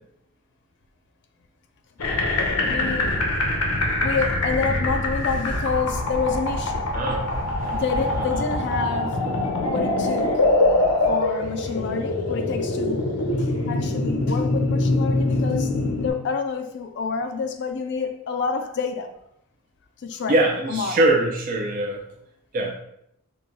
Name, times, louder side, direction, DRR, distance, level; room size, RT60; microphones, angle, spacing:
sound 1, 2.0-16.1, left 2 dB, 80° left, 0.9 m, -24 dB
voice 1, 2.7-3.2 4.0-6.9 7.7-9.2 9.7-10.4 11.1-13.0 13.4-19.1 20.0-20.4 20.7-21.1, left 5 dB, 55° left, 0.4 m, -28 dB
voice 2, 6.9-7.8 9.3-9.4 20.3-22.0 22.5-22.7, right 2 dB, 40° right, 0.5 m, -23 dB
4.8 x 2.3 x 3.8 m
head